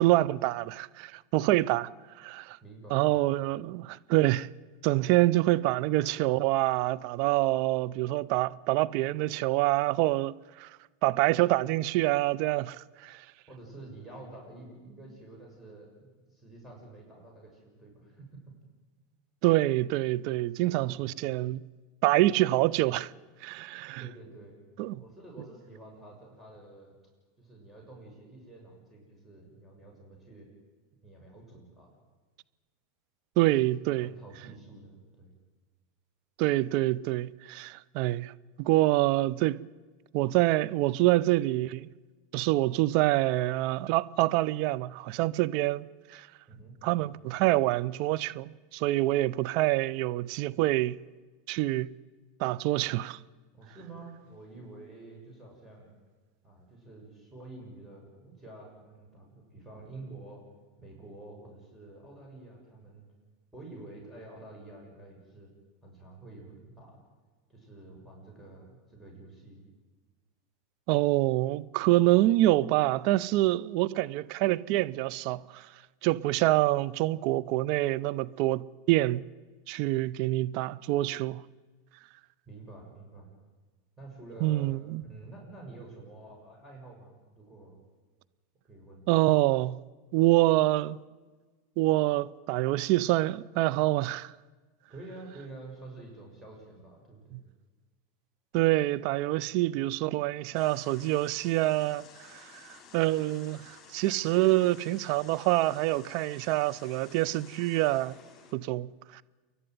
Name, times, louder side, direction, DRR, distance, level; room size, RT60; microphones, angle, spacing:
voice 1, 0.0-1.9 2.2-2.6 2.9-4.5 4.8-10.7 11.0-13.2 19.4-21.6 22.0-23.1 23.4-24.1 24.8-25.0 33.4-34.1 36.4-38.3 38.6-39.6 40.1-41.9 42.3-46.3 46.8-51.0 51.5-51.9 52.4-53.2 70.9-75.7 76.0-79.2 79.7-81.4 84.4-85.0 89.1-89.8 90.1-91.0 91.8-94.3 97.3-97.4 98.5-102.4 102.9-108.2 108.5-109.2, right 17 dB, 60° right, 0.6 m, -26 dB
voice 2, 2.6-3.4 13.5-18.3 20.6-21.2 24.0-24.6 25.0-26.9 27.4-30.5 31.0-31.9 33.5-33.6 34.0-35.3 46.5-47.1 53.5-55.9 56.4-60.4 60.8-63.1 63.5-65.5 65.8-67.0 67.5-69.6 82.5-83.3 84.0-87.8 88.7-89.0 94.9-97.4, right 2 dB, ahead, 6.8 m, -48 dB
sound 1, 100.5-108.5, left 6 dB, 35° left, 6.3 m, -53 dB
28.5 x 11.5 x 9.4 m
hypercardioid pair, 95°, 0 cm